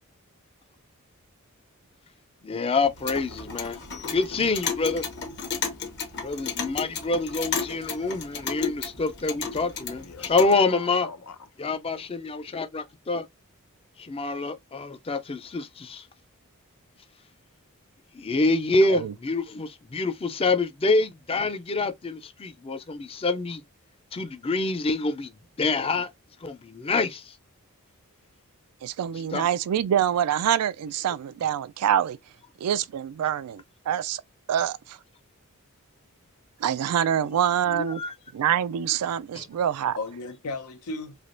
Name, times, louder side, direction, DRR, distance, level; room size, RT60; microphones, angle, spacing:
voice 1, 2.4-3.8 4.1-5.0 6.2-11.1 11.6-13.2 14.0-16.0 18.1-23.6 24.1-25.3 25.6-26.1 26.4-27.4 29.3-29.5 37.7-38.1 39.4-39.5, left 3 dB, 25° left, 0.4 m, -26 dB
Clock, 2.8-10.6, left 5 dB, 50° left, 1.0 m, -33 dB
voice 2, 10.0-11.4 40.0-41.2, left 3 dB, 85° left, 0.7 m, -37 dB
voice 3, 28.8-32.2 32.6-34.2 34.5-35.0 36.6-38.0 38.3-40.0, right 9 dB, 90° right, 0.3 m, -25 dB
3.3 x 2.8 x 2.5 m
head